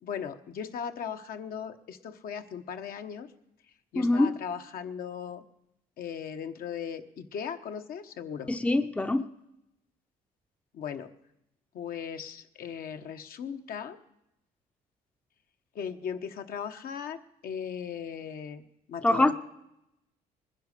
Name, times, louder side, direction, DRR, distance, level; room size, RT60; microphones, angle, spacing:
voice 1, 0.0-3.3 3.9-5.4 6.0-8.5 10.7-11.1 11.7-14.0 15.7-19.3, left 7 dB, 60° left, 7 dB, 1.1 m, -38 dB
voice 2, 3.9-4.3 8.5-9.3 19.0-19.3, left 2 dB, 5° left, 10 dB, 0.6 m, -24 dB
20.0 x 10.5 x 6.6 m, 0.85 s
cardioid pair, 110°, 17 cm